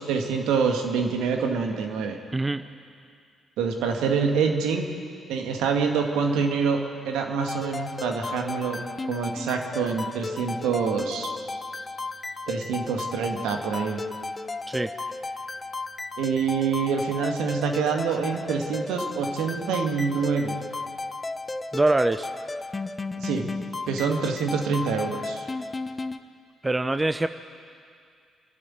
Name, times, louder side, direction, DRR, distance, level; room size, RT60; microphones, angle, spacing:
voice 1, 0.0-2.2 3.6-4.8 5.3-8.8 9.1-11.3 12.5-14.0 16.2-20.5 23.2-23.5 23.9-25.5, right 5 dB, 65° right, 3 dB, 2.0 m, -26 dB
sound 1, 7.4-26.2, left 3 dB, 25° left, 0.9 m, -34 dB
voice 2, 21.7-22.3 26.6-27.3, right 2 dB, 20° right, 11 dB, 0.7 m, -23 dB
28.0 x 12.0 x 9.3 m, 2.3 s
figure-of-eight pair, 40°, 0 cm